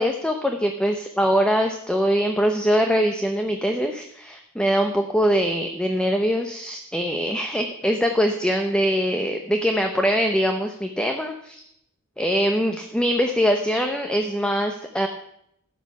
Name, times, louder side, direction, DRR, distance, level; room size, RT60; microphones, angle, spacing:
voice 1, 0.0-11.6 12.2-15.1, equal, 5° left, 4 dB, 0.8 m, -23 dB
13.0 x 8.5 x 5.6 m, 0.72 s
head